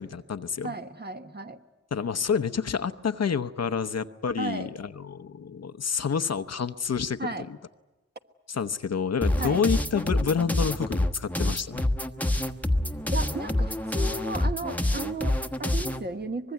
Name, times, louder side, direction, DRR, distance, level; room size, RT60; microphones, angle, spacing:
voice 1, 0.0-0.7 1.9-7.2 7.5-7.6 8.5-11.8, left 6 dB, 60° left, 11 dB, 0.9 m, -28 dB
voice 2, 0.6-1.6 4.4-4.7 7.2-7.5 9.4-9.6 13.1-16.5, right 2 dB, 35° right, 6 dB, 1.4 m, -34 dB
sound 1, 9.2-16.0, left 1 dB, 5° left, 1.2 m, -27 dB
24.5 x 21.0 x 9.4 m, 1.1 s
wide cardioid pair, 80°, 29 cm